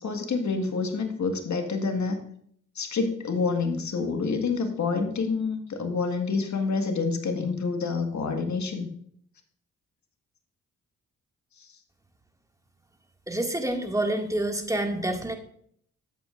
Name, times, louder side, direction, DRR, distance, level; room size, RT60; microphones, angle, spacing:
voice 1, 0.0-2.2 2.8-8.9 11.6-11.7, left 4 dB, 55° left, 5 dB, 1.8 m, -28 dB
voice 2, 13.3-15.3, right 1 dB, 10° right, 3 dB, 2.1 m, -27 dB
13.0 x 8.1 x 2.5 m, 0.64 s
hypercardioid pair, 40°, 34 cm